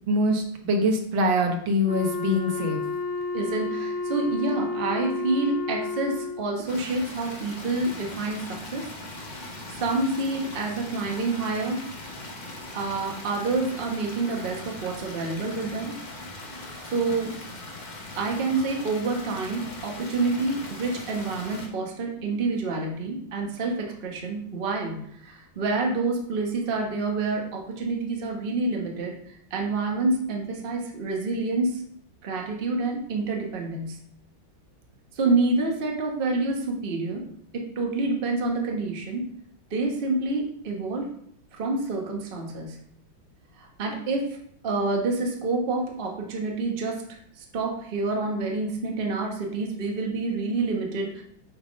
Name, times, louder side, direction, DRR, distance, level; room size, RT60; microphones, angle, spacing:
voice 1, 0.1-2.8, equal, 70° right, 3 dB, 1.7 m, -24 dB
Wind instrument woodwind instrument, 1.9-6.5, left 4 dB, 70° left, 2.4 m, -31 dB
voice 2, 3.3-8.9 9.7-11.8 12.7-16.0 16.5-17.3 18.2-31.8 32.2-34.0 35.2-37.3 37.5-39.2 39.7-41.1 41.6-42.8 43.6-44.4 44.6-51.2, right 3 dB, 35° right, 1 dB, 1.1 m, -28 dB
sound 1, 6.7-21.7, left 2 dB, 35° left, 0.7 m, -40 dB
7.9 x 3.5 x 5.2 m, 0.66 s
omnidirectional pair, 2.2 m